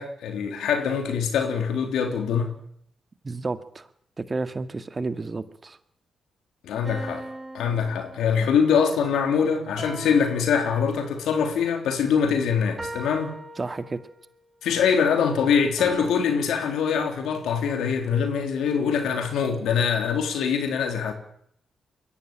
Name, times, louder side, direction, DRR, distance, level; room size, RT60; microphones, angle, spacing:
voice 1, 0.0-2.5 6.6-7.2 7.5-13.3 14.6-21.1, left 6 dB, 80° left, 3.3 m, -23 dB
voice 2, 3.2-3.9 4.2-5.8 13.6-14.0, right 3 dB, 35° right, 1.9 m, -31 dB
sound 1, 6.8-8.6 9.8-11.2 12.8-14.3 15.8-16.8, right 1 dB, 15° right, 7.0 m, -39 dB
22.5 x 15.5 x 9.0 m
hypercardioid pair, 45°, 0 cm